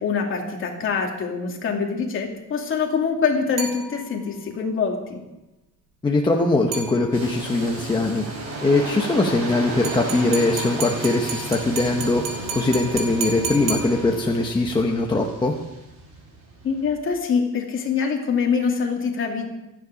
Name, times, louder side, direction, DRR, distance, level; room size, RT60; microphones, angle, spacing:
voice 1, 0.0-5.2 16.6-19.5, left 5 dB, 40° left, 1 dB, 2.6 m, -24 dB
sound 1, 3.6-4.4 6.7-7.5 9.8-14.5, right 4 dB, 70° right, 3.3 m, -33 dB
voice 2, 6.0-8.2 8.6-15.5, left 2 dB, 15° left, 1 dB, 0.9 m, -21 dB
sound 2, 7.1-17.0, right 2 dB, 45° right, 5.4 m, -34 dB
26.5 x 9.9 x 5.1 m, 0.97 s
cardioid pair, 180°, 33 cm